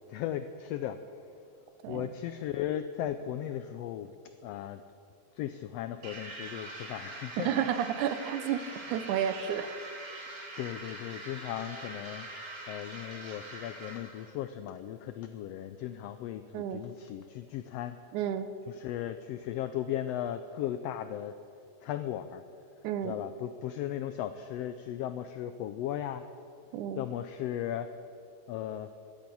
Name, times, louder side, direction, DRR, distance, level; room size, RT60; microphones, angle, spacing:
voice 1, 0.1-1.0 1.9-4.1 4.4-4.8 5.3-7.7 10.6-12.4 12.7-18.0 18.7-21.3 21.8-22.4 23.0-26.2 27.0-27.9 28.5-28.9, left 11 dB, 90° left, 10 dB, 1.4 m, -36 dB
sound 1, 6.0-14.3, right 2 dB, 40° right, 3.0 m, -43 dB
voice 2, 7.4-9.8 16.5-16.8 18.1-18.5 22.8-23.2 26.7-27.0, right 9 dB, 90° right, 11 dB, 2.2 m, -31 dB
12.0 x 10.5 x 8.4 m, 2.5 s
omnidirectional pair, 3.4 m